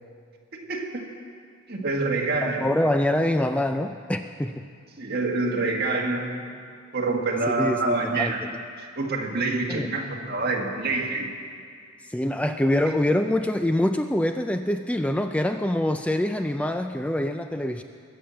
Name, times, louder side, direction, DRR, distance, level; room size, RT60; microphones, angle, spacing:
voice 1, 0.5-1.0 1.7-2.7 5.0-6.4 6.9-8.4 9.0-11.3, right 3 dB, 50° right, 1 dB, 1.7 m, -26 dB
voice 2, 2.4-4.6 7.6-8.3 9.7-9.9 12.0-17.8, left 1 dB, 5° left, 7 dB, 0.3 m, -25 dB
21.0 x 7.2 x 7.6 m, 2.2 s
head